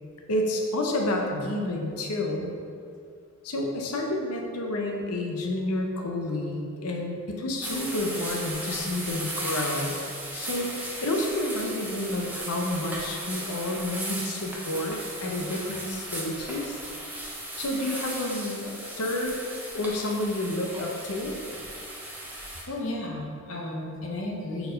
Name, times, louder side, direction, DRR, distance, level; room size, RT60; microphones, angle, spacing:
voice 1, 0.3-2.5 3.4-10.0 10.3-16.8 17.6-19.4 19.7-21.4, left 1 dB, 90° left, 1 dB, 0.7 m, -30 dB
sound 1, 7.6-22.6, right 1 dB, 10° right, 0.8 m, -36 dB
voice 2, 22.3-24.7, left 1 dB, 60° left, -1 dB, 0.9 m, -34 dB
4.6 x 4.3 x 5.1 m, 2.3 s
head